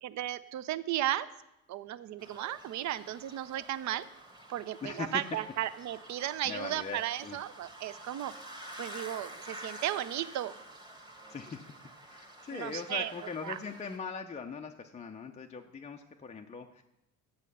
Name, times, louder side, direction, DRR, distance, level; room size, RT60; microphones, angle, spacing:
voice 1, 0.0-1.3 1.7-4.1 4.5-8.4 8.8-10.5 12.5-13.6, right 13 dB, 40° right, 16 dB, 0.5 m, -35 dB
sound 1, 2.2-14.0, right 1 dB, 10° right, 1.3 m, -49 dB
voice 2, 4.8-5.3 6.5-7.4 11.3-11.7 12.1-16.8, left 5 dB, 15° left, 3 dB, 0.5 m, -40 dB
7.6 x 6.3 x 5.4 m, 0.88 s
hypercardioid pair, 60°, 43 cm